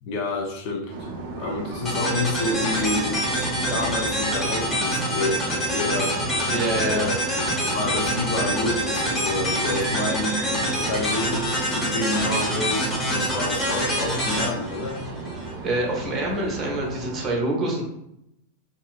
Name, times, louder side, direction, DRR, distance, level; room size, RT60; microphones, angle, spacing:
voice 1, 0.0-3.2 3.5-6.1 6.8-7.2 7.7-15.0, left 2 dB, 45° left, 0 dB, 0.6 m, -29 dB
sound 1, 0.9-17.3, right 3 dB, 50° right, 0.5 m, -35 dB
sound 2, 1.8-15.5, equal, 10° left, 1.1 m, -26 dB
voice 2, 6.5-7.1 15.6-17.8, right 1 dB, 25° right, -2 dB, 0.9 m, -26 dB
2.8 x 2.7 x 2.4 m, 0.83 s
figure-of-eight pair, 90°, 0 cm